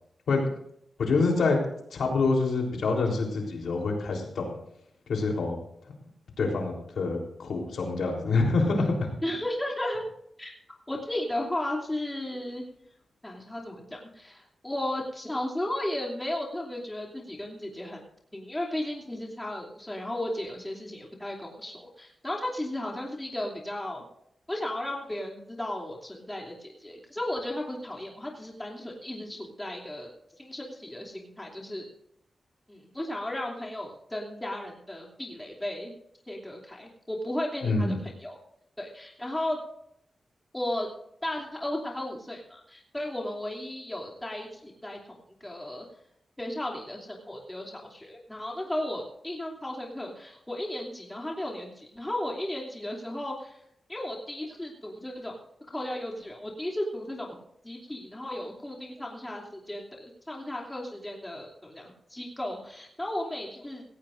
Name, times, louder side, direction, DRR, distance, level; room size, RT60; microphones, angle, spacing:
voice 1, 1.0-1.6 1.9-4.5 5.1-5.6 6.4-9.1 37.6-37.9, left 3 dB, 90° left, 0 dB, 3.7 m, -26 dB
voice 2, 9.2-10.0 10.4-10.5 10.9-12.6 13.2-18.0 18.3-24.0 24.5-31.9 32.7-35.9 36.3-38.0 38.2-38.4 38.8-39.6 40.5-40.9 41.2-45.8 46.4-53.6 53.9-55.4 55.7-57.4 57.6-63.8, left 1 dB, 15° left, -1 dB, 2.9 m, -35 dB
17.0 x 17.0 x 2.6 m, 0.72 s
cardioid pair, 85°, 0 cm